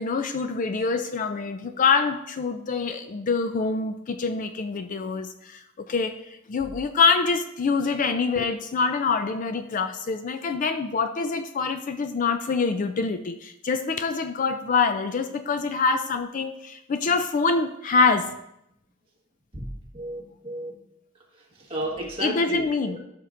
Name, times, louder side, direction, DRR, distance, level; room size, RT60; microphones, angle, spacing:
voice 1, 0.0-18.3 22.2-23.0, left 4 dB, 40° left, 9 dB, 0.4 m, -25 dB
voice 2, 19.9-20.8 21.7-23.0, right 1 dB, 25° right, -1 dB, 1.6 m, -33 dB
12.5 x 6.6 x 2.5 m, 0.81 s
head